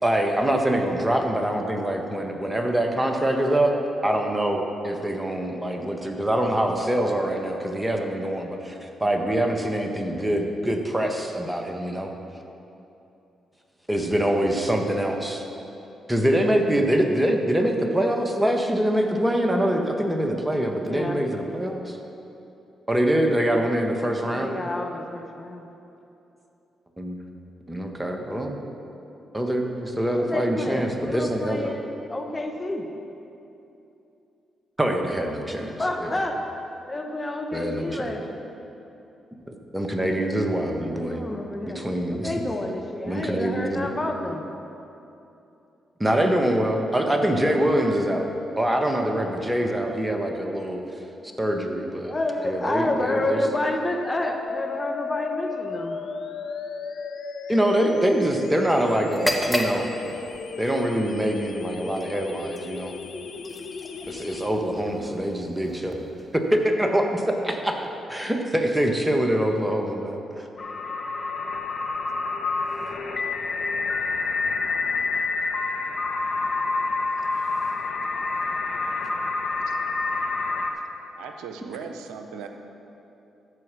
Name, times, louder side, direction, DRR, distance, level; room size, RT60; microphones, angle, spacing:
voice 1, 0.0-3.7 4.0-12.1 13.9-15.4 16.1-22.0 22.9-24.5 27.0-27.2 27.7-28.6 29.3-31.7 34.8-36.2 37.5-38.1 39.5-41.2 41.6-42.3 43.0-43.9 46.0-48.3 48.6-50.8 51.4-52.2 52.4-53.4 57.5-59.9 60.6-62.9 64.1-66.0 66.3-70.5, right 1 dB, 15° right, 3 dB, 1.4 m, -24 dB
voice 2, 20.8-21.2 24.4-25.7 30.0-32.9 35.6-36.4 36.9-38.5 40.9-44.4 52.0-56.0, left 1 dB, 25° left, 3 dB, 1.2 m, -29 dB
sound 1, 54.5-64.5, left 5 dB, 65° left, 0.6 m, -35 dB
sound 2, 59.1-66.9, equal, 5° left, 1.3 m, -34 dB
sound 3, 70.6-80.7, left 3 dB, 50° left, 1.1 m, -27 dB
voice 3, 81.1-82.5, right 6 dB, 80° right, 5 dB, 0.6 m, -38 dB
13.5 x 4.8 x 6.2 m, 2.9 s
hypercardioid pair, 45°, 0 cm